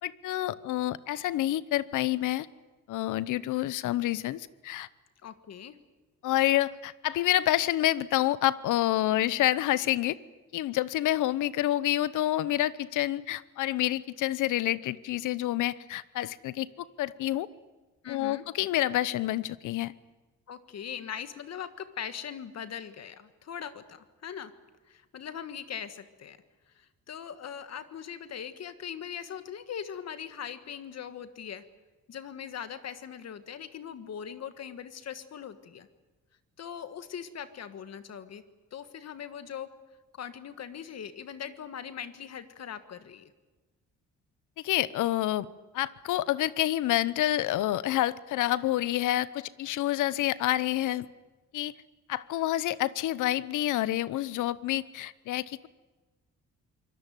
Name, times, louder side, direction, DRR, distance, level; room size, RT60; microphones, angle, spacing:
voice 1, 0.0-2.5 2.9-4.9 6.2-10.2 10.5-17.5 18.1-19.9 44.6-45.5 45.7-51.1 51.5-51.7 52.1-55.6, left 14 dB, 85° left, 18 dB, 0.9 m, -28 dB
voice 2, 5.2-5.8 18.0-18.4 20.5-24.5 24.9-26.4 26.7-31.6 32.1-35.9 36.6-38.4 38.7-39.7 40.1-43.3, left 8 dB, 60° left, 11 dB, 1.6 m, -40 dB
24.0 x 19.0 x 9.3 m, 1.2 s
cardioid pair, 90°, 30 cm